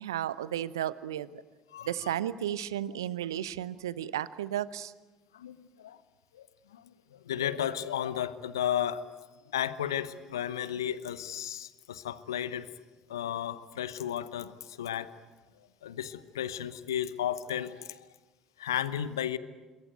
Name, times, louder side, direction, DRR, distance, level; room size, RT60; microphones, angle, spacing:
voice 1, 0.0-1.4 1.8-4.9, right 11 dB, 75° right, 18 dB, 0.8 m, -33 dB
voice 2, 1.7-2.1 5.3-6.0 6.3-6.5 6.7-6.8 7.1-9.0 9.5-12.7 13.1-15.1 15.8-18.0 18.6-19.4, left 10 dB, 75° left, 15 dB, 1.0 m, -33 dB
27.0 x 21.5 x 9.3 m, 1.3 s
figure-of-eight pair, 55°, 2 cm